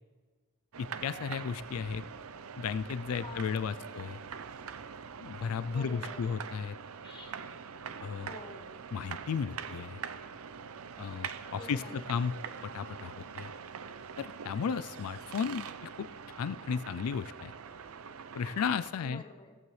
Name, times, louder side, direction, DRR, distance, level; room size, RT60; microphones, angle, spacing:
sound 1, 0.7-18.9, right 6 dB, 80° right, 0.6 m, -44 dB
voice 1, 0.8-2.0 2.6-4.2 5.2-6.8 8.0-8.3 8.9-10.0 11.0-12.3 12.6-13.5 14.2-16.1 16.4-17.5 18.3-19.2, left 6 dB, 85° left, 14 dB, 0.4 m, -34 dB
voice 2, 3.2-3.9 5.7-6.4 7.0-7.4 8.2-8.8 11.6-12.1 19.0-19.6, left 3 dB, 20° left, 4 dB, 1.0 m, -49 dB
15.0 x 14.5 x 3.2 m, 1.4 s
head